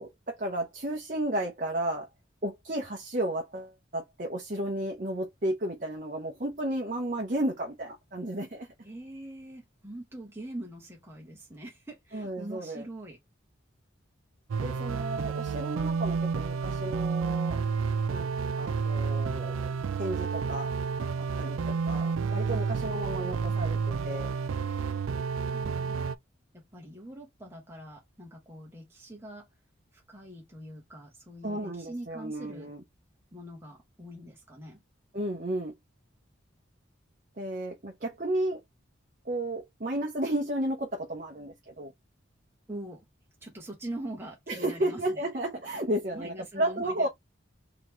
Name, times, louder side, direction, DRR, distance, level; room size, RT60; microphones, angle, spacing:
voice 1, 0.0-2.1 2.4-8.7 12.1-12.8 14.6-17.6 18.1-18.3 18.6-19.7 20.0-20.7 21.2-24.3 31.4-32.8 35.1-35.7 37.4-38.6 39.2-41.9 44.5-47.1, right 1 dB, 40° right, 0.9 m, -33 dB
voice 2, 8.8-13.2 25.5-26.1 26.5-29.5 29.9-32.7 33.3-34.8 42.7-43.1 43.4-45.2 46.1-47.1, right 1 dB, 10° right, 1.2 m, -43 dB
sound 1, 14.5-26.1, right 5 dB, 90° right, 0.4 m, -30 dB
4.1 x 3.0 x 3.1 m
head